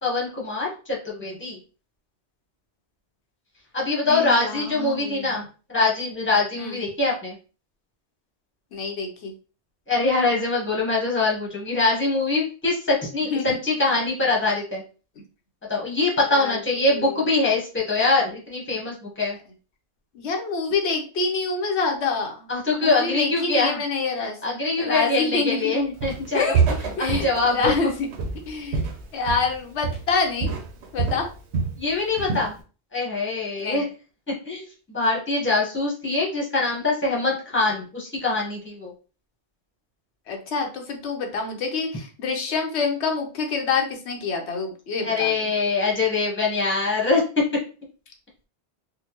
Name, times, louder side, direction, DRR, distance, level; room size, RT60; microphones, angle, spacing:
voice 1, 0.0-1.6 3.7-5.4 5.7-7.4 9.9-14.8 15.7-19.4 22.5-23.8 24.2-26.5 27.0-27.7 31.8-32.6 32.9-33.9 34.3-38.9 45.0-47.2, left 3 dB, 10° left, -4 dB, 1.0 m, -23 dB
voice 2, 4.1-5.4 6.6-6.8 8.7-9.3 13.3-13.6 16.3-16.6 16.9-17.2 20.1-22.5 22.8-25.8 26.3-26.6 27.0-28.1 28.5-28.8 29.1-30.5 30.9-31.3 33.6-33.8 40.3-45.3, left 4 dB, 85° left, 2 dB, 1.0 m, -27 dB
Walk footsteps, 26.0-26.3 26.5-29.6 29.8-30.1 30.4-31.8 32.1-32.5, right 5 dB, 90° right, 0.9 m, -26 dB
3.7 x 2.2 x 2.9 m, 0.36 s
omnidirectional pair, 1.1 m